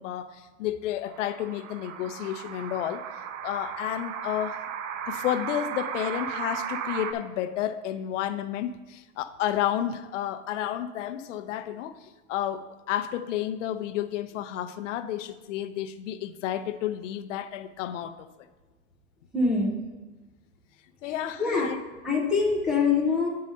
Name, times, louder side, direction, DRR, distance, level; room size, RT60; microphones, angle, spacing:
voice 1, 0.0-3.0 3.4-4.6 5.1-18.2 21.0-21.8, left 11 dB, 70° left, 11 dB, 0.6 m, -31 dB
sound 1, 1.1-7.1, right 8 dB, 75° right, 0.8 m, -35 dB
voice 2, 19.3-19.7 21.0-21.1 21.4-21.7 22.0-23.3, left 4 dB, ahead, -6 dB, 0.4 m, -24 dB
8.5 x 4.8 x 5.3 m, 1.2 s
supercardioid pair, 160°, 39 cm